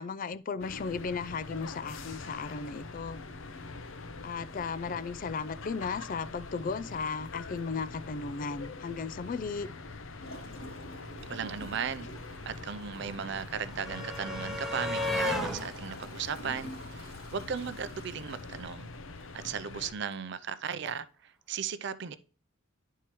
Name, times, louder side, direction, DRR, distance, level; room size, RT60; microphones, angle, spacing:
voice 1, 0.0-3.2 4.2-9.7, left 5 dB, 40° left, 0.3 m, -35 dB
sound 1, 0.6-19.9, left 3 dB, 70° left, 0.7 m, -44 dB
Gurgling / Toilet flush, 10.2-19.6 20.1-20.2, equal, 85° left, 2.6 m, -50 dB
voice 2, 11.3-12.1 12.5-18.9 19.3-22.2, right 7 dB, 55° right, 0.5 m, -36 dB
sound 2, 11.9-17.5 18.7-18.8 19.1-19.2, left 1 dB, ahead, 0.9 m, -37 dB
11.5 x 4.6 x 3.0 m
head